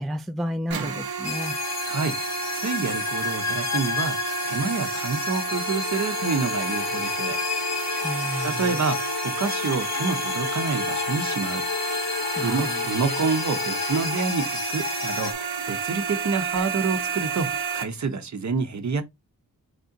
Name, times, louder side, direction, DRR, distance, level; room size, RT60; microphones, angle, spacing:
voice 1, 0.0-1.5 8.0-8.6 12.4-12.8, equal, ahead, 0.3 m, -31 dB
sound 1, 0.7-17.8, right 5 dB, 90° right, 0.8 m, -31 dB
sound 2, 1.2-15.3, left 7 dB, 50° left, 0.6 m, -32 dB
voice 2, 1.8-2.2 2.5-4.2 4.4-7.4 8.4-11.7 12.4-15.3 15.7-19.0, right 4 dB, 50° right, 0.8 m, -28 dB
sound 3, 5.5-14.3, left 7 dB, 90° left, 0.6 m, -35 dB
3.8 x 3.4 x 2.6 m
cardioid pair, 75°, 36 cm